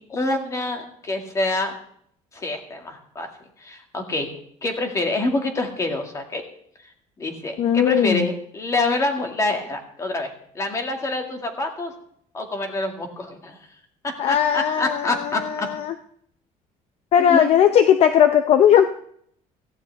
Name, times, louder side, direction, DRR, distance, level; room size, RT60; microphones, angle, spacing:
voice 1, 0.1-1.7 2.3-3.3 3.6-4.3 4.6-6.4 7.2-11.9 12.3-13.6 14.3-15.7 17.2-17.5, left 2 dB, 20° left, 4 dB, 2.1 m, -26 dB
voice 2, 7.6-8.3 14.2-15.9 17.1-18.8, left 9 dB, 50° left, 9 dB, 0.6 m, -18 dB
17.0 x 15.0 x 3.4 m, 0.66 s
cardioid pair, 170°, 14 cm